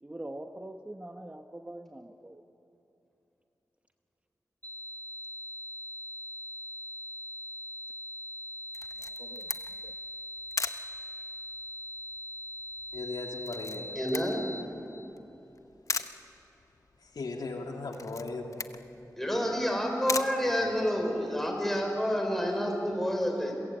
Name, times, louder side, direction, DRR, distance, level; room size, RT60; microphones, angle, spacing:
voice 1, 0.0-2.4 9.2-9.9, right 1 dB, 20° right, 5 dB, 1.0 m, -44 dB
sound 1, 4.6-14.6, equal, 25° left, 2.3 m, -41 dB
Camera, 8.7-21.2, left 4 dB, 50° left, 0.9 m, -40 dB
voice 2, 12.9-13.9 17.0-18.6 20.6-20.7, left 3 dB, 85° left, 2 dB, 2.8 m, -38 dB
voice 3, 13.9-14.4 19.2-23.5, equal, 5° left, 2 dB, 5.2 m, -29 dB
30.0 x 22.5 x 8.8 m, 3.0 s
wide cardioid pair, 120°, 7 cm